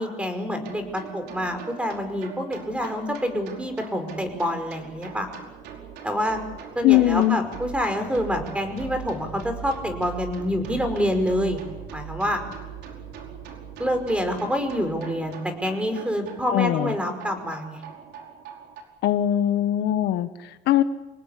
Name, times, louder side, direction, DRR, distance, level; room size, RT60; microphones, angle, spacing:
voice 1, 0.0-5.3 6.0-6.4 6.8-11.6 11.9-12.4 13.8-17.8, equal, 5° right, 7 dB, 5.5 m, -27 dB
sound 1, 0.5-18.8, right 8 dB, 80° right, 5.1 m, -41 dB
voice 2, 6.8-7.4 16.5-16.9 19.0-20.8, left 13 dB, 80° left, 11 dB, 1.3 m, -21 dB
27.0 x 19.0 x 8.4 m, 1.1 s
cardioid pair, 110°, 17 cm